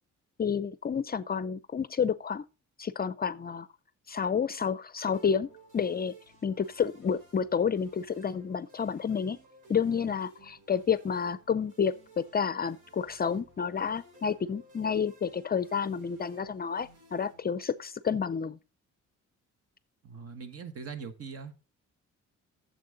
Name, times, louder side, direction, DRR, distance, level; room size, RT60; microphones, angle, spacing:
voice 1, 0.4-2.4 2.8-3.7 4.1-5.5 5.7-6.1 6.4-9.4 9.7-18.6, left 6 dB, 30° left, 0.5 m, -30 dB
sound 1, 5.1-18.2, right 2 dB, 90° right, 4.8 m, -57 dB
voice 2, 20.0-21.5, right 5 dB, 50° right, 1.5 m, -41 dB
9.3 x 7.4 x 3.9 m
cardioid pair, 90°, 30 cm